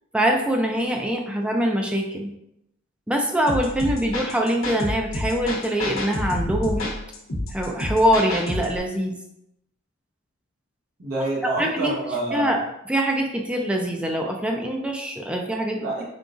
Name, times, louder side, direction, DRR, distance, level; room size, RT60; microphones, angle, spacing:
voice 1, 0.1-2.3 3.1-6.9 7.5-9.2 11.6-11.9 12.3-12.6 12.9-15.8, equal, 5° right, 1 dB, 0.3 m, -23 dB
sound 1, 3.5-8.8, left 1 dB, 85° left, 0.9 m, -29 dB
voice 2, 11.0-12.6 15.7-16.0, right 2 dB, 85° right, -4 dB, 1.0 m, -27 dB
3.8 x 3.7 x 2.5 m, 0.82 s
head